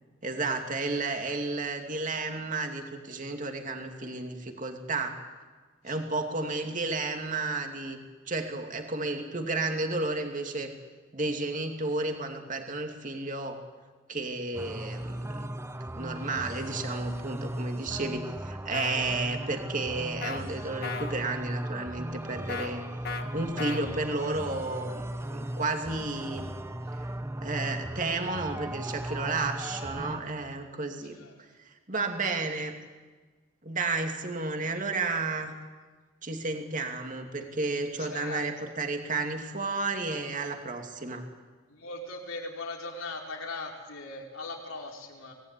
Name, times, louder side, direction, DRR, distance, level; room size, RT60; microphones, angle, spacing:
voice 1, 0.2-5.2 5.8-8.0 8.3-10.7 11.1-13.6 14.1-15.5 15.9-22.8 23.3-26.5 27.4-31.2 31.9-32.7 33.6-35.5 36.2-41.2, right 3 dB, 40° right, 4 dB, 2.6 m, -32 dB
voice 2, 5.9-6.2 31.1-31.3 32.3-32.5 38.0-38.7 41.0-41.1 41.7-45.3, left 2 dB, 85° left, 0 dB, 5.2 m, -40 dB
sound 1, 14.5-30.2, right 1 dB, 10° right, 1.0 m, -37 dB
sound 2, 18.7-19.0 20.2-20.4 20.8-21.1 22.5-22.7 23.0-23.2 23.6-23.8, left 5 dB, 50° left, 1.9 m, -35 dB
24.5 x 19.5 x 9.9 m, 1.4 s
head